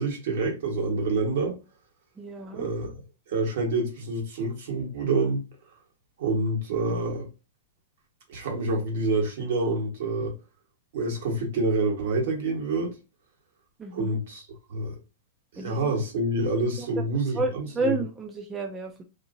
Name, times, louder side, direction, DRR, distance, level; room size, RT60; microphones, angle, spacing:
voice 1, 0.0-1.6 2.5-3.0 3.3-5.4 6.2-7.3 8.3-10.3 10.9-12.9 13.9-14.9 15.5-17.9, right 2 dB, 65° right, 1.3 m, -27 dB
voice 2, 2.2-2.7 13.8-14.2 15.6-15.9 16.8-16.9 17.3-19.0, right 3 dB, 15° right, 0.4 m, -31 dB
2.8 x 2.6 x 2.6 m
hypercardioid pair, 140°, 0 cm